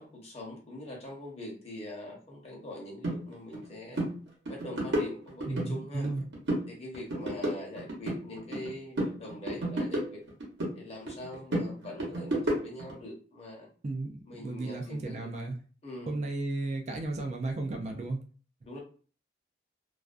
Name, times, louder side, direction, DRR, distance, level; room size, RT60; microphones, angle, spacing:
voice 1, 0.0-4.0 4.5-6.1 6.7-10.2 10.7-13.7 14.3-15.3 15.8-16.2 18.6-18.8, left 1 dB, 35° left, -2 dB, 0.8 m, -43 dB
sound 1, 3.0-3.2 3.5-3.7 3.9-4.1 4.5-5.7 6.0-6.7 6.9-8.7 9.0-10.7 11.1-12.9, right 1 dB, 75° right, 0.9 m, -32 dB
voice 2, 5.5-6.2 13.8-15.6 16.1-18.2, right 2 dB, 40° right, 3 dB, 0.3 m, -34 dB
2.4 x 2.2 x 2.4 m, 0.39 s
head